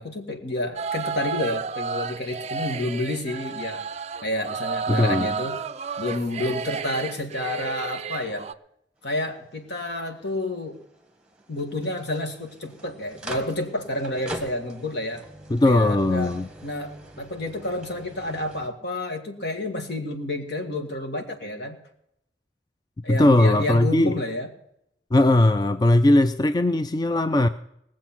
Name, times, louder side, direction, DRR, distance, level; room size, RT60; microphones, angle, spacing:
voice 1, 0.0-3.8 4.2-5.6 6.0-8.5 9.0-10.8 11.5-15.2 15.6-16.3 16.6-21.8 23.0-24.5, left 1 dB, 65° left, 1.9 m, -30 dB
sound 1, 0.8-8.5, right 5 dB, 40° right, 0.4 m, -32 dB
voice 2, 4.9-5.3 15.5-16.5 23.1-24.2 25.1-27.5, left 1 dB, 25° left, 0.4 m, -19 dB
sound 2, 9.0-18.7, right 1 dB, 5° right, 1.5 m, -43 dB
19.0 x 7.4 x 6.0 m
head